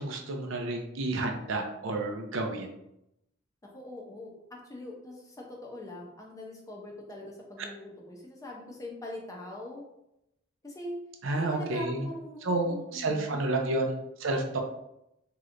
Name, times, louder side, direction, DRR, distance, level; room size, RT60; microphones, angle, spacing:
voice 1, 0.0-2.7 11.2-12.1 12.4-14.6, right 2 dB, 75° right, 3 dB, 0.5 m, -30 dB
voice 2, 3.7-9.8 10.6-11.0 11.3-13.7, left 1 dB, 15° left, -1 dB, 0.6 m, -42 dB
3.2 x 2.9 x 2.4 m, 0.83 s
head